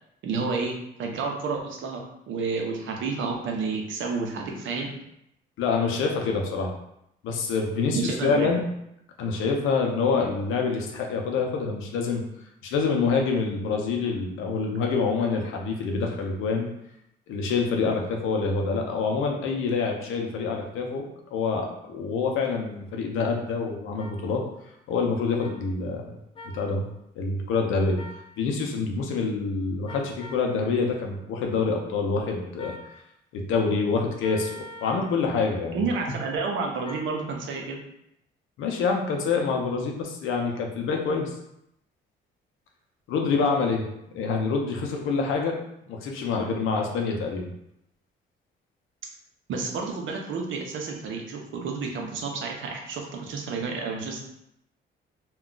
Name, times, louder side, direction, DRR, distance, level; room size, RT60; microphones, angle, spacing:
voice 1, 0.2-4.9 7.9-8.5 35.7-37.8 49.5-54.2, right 4 dB, 75° right, 2 dB, 0.6 m, -30 dB
voice 2, 5.6-6.7 7.2-8.7 9.2-12.2 12.6-16.7 17.3-21.0 21.3-24.4 24.9-26.0 26.5-26.8 27.2-28.0 28.4-32.7 33.3-35.8 38.6-41.3 43.1-43.8 44.1-45.6 45.9-47.5, left 4 dB, 85° left, 2 dB, 0.6 m, -26 dB
sound 1, 24.0-24.1 25.4-25.5 26.4-26.6 28.0-28.2 29.9-30.5 32.6-32.9 34.2-35.1 36.8-37.1, left 1 dB, 25° left, 0.3 m, -42 dB
2.3 x 2.2 x 3.7 m, 0.79 s
cardioid pair, 90°, 20 cm